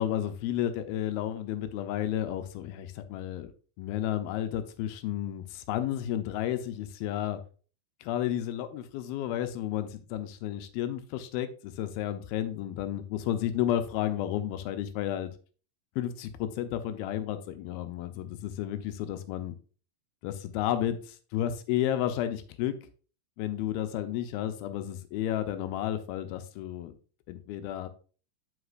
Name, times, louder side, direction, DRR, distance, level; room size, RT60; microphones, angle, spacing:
voice 1, 0.0-3.5 3.8-7.4 8.1-15.3 16.0-19.6 20.2-22.8 23.4-27.0 27.3-27.9, left 11 dB, 90° left, 9 dB, 2.6 m, -32 dB
8.0 x 5.9 x 2.5 m, 0.39 s
omnidirectional pair, 4.2 m